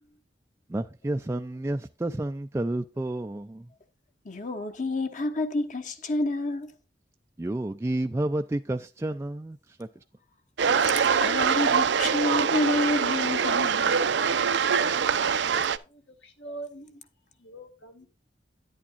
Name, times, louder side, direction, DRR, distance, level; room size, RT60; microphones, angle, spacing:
voice 1, 0.7-3.7 7.4-9.9, right 1 dB, 15° right, 0.3 m, -30 dB
voice 2, 4.2-6.7 11.0-14.0, left 2 dB, 45° left, 1.1 m, -29 dB
sound 1, 10.6-15.8, right 6 dB, 75° right, 0.5 m, -24 dB
voice 3, 15.9-17.0 17.4-18.1, right 2 dB, 75° left, 2.1 m, -43 dB
10.5 x 8.6 x 2.4 m
head